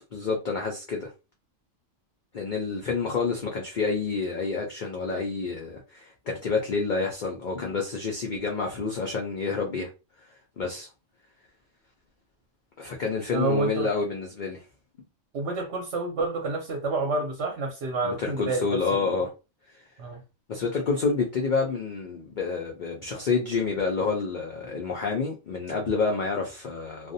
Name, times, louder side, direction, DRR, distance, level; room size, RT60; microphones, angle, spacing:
voice 1, 0.1-1.1 2.3-9.9 10.6-10.9 12.8-14.6 18.0-19.3 20.5-27.1, left 4 dB, 85° left, 0.4 m, -28 dB
voice 2, 13.3-13.9 15.3-19.2 20.0-20.2, right 3 dB, 60° right, 0.9 m, -29 dB
2.5 x 2.0 x 2.6 m
omnidirectional pair, 1.4 m